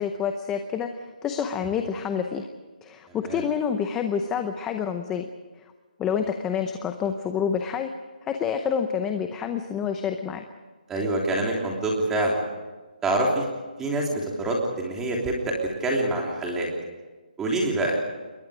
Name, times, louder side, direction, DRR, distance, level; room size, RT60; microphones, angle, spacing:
voice 1, 0.0-2.5 2.8-5.3 6.0-7.9 8.2-10.4, left 7 dB, 10° left, 6 dB, 0.7 m, -28 dB
voice 2, 3.1-3.4 10.9-12.4 13.0-13.4 13.8-16.7 17.4-18.0, right 2 dB, 5° right, -1 dB, 3.2 m, -26 dB
28.5 x 22.0 x 5.0 m, 1.3 s
hypercardioid pair, 170°, 5 cm